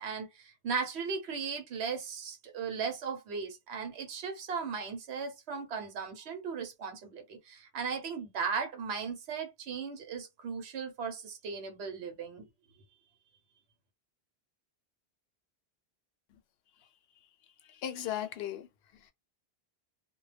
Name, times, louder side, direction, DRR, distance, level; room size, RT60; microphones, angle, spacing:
voice 1, 0.0-12.5, right 5 dB, 85° right, 1.0 m, -37 dB
voice 2, 17.6-18.7 18.9-19.1, left 11 dB, 75° left, 0.8 m, -37 dB
2.2 x 2.1 x 3.2 m
omnidirectional pair, 1.1 m